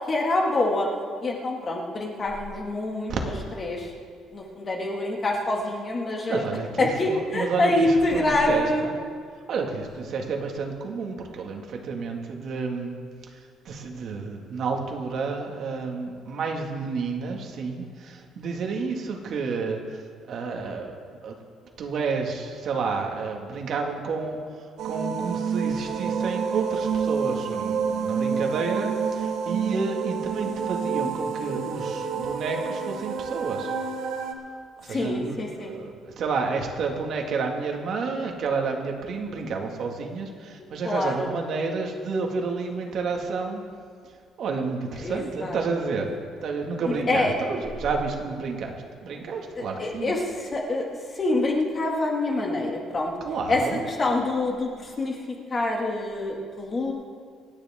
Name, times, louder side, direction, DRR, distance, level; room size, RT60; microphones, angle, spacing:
voice 1, 0.1-0.9 1.2-3.1 3.6-3.9 4.3-6.4 6.8-8.9 34.9-35.7 40.8-41.3 45.0-45.6 46.9-47.3 49.6-50.9 51.1-53.1 53.5-53.6 54.0-55.2 55.5-56.9, left 2 dB, 25° left, 0 dB, 2.2 m, -26 dB
voice 2, 6.2-8.9 9.5-13.0 13.3-13.4 13.7-19.8 20.3-20.9 21.2-21.4 21.8-33.7 34.8-43.6 44.4-46.1 46.4-48.8 49.0-50.1 53.2-53.8, right 4 dB, 50° right, 1 dB, 2.0 m, -30 dB
sound 1, 24.8-34.3, right 6 dB, 70° right, 1.4 m, -28 dB
27.0 x 10.0 x 3.7 m, 2.2 s
cardioid pair, 145°, 0 cm